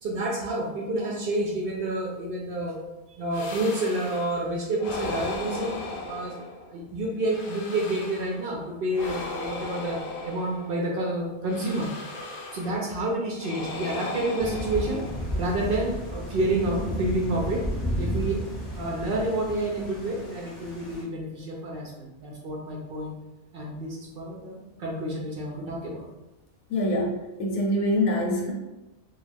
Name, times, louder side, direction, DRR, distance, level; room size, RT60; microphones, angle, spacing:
voice 1, 0.0-2.8 3.1-6.4 6.7-11.9 12.5-15.1 15.3-17.6 18.0-18.4 18.7-23.1 23.5-26.1, right 1 dB, 65° right, -2 dB, 0.5 m, -29 dB
sound 1, 3.3-4.4 4.8-6.8 7.2-8.5 8.9-10.9 11.5-12.9 13.4-15.5, left 2 dB, 65° left, 0.7 m, -37 dB
Thunder / Rain, 14.4-21.0, equal, ahead, 0.5 m, -33 dB
voice 2, 26.7-28.5, left 1 dB, 85° left, 0 dB, 1.1 m, -25 dB
2.4 x 2.3 x 3.3 m, 0.99 s
omnidirectional pair, 1.4 m